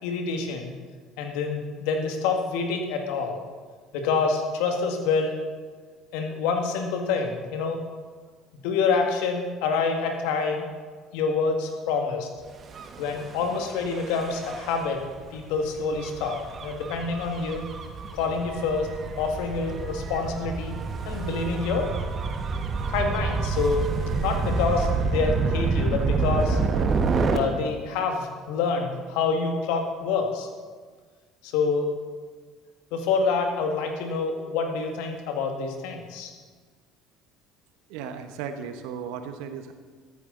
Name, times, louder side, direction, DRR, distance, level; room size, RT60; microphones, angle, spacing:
voice 1, 0.0-0.8 1.2-3.4 3.9-5.4 6.1-7.8 8.6-10.7 11.1-12.3 13.0-15.0 15.3-17.7 18.1-18.9 19.2-20.8 21.1-21.9 22.9-23.8 24.1-26.6 27.3-30.5 31.4-31.9 32.9-36.3, left 4 dB, 70° left, 3 dB, 2.0 m, -27 dB
Gull seagull / Waves surf / Siren, 12.6-27.4, right 4 dB, 40° right, 1.4 m, -28 dB
voice 2, 37.9-39.7, right 7 dB, 70° right, 8 dB, 1.2 m, -35 dB
14.5 x 13.5 x 3.9 m, 1.5 s
hypercardioid pair, 65°, 0 cm